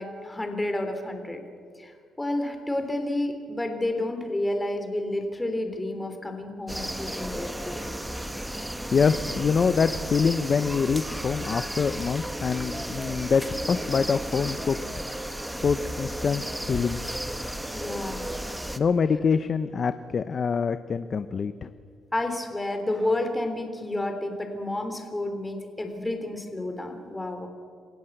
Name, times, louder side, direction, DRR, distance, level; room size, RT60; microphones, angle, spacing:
voice 1, 0.0-1.4 1.8-7.8 17.7-18.3 22.1-27.5, left 1 dB, 15° left, 6 dB, 3.4 m, -30 dB
sound 1, 6.7-18.8, right 1 dB, 5° right, 1.3 m, -34 dB
voice 2, 8.9-14.8 15.6-17.0 18.8-21.7, left 5 dB, 45° left, 11 dB, 0.8 m, -25 dB
28.0 x 16.0 x 8.0 m, 2.1 s
cardioid pair, 90°, 0 cm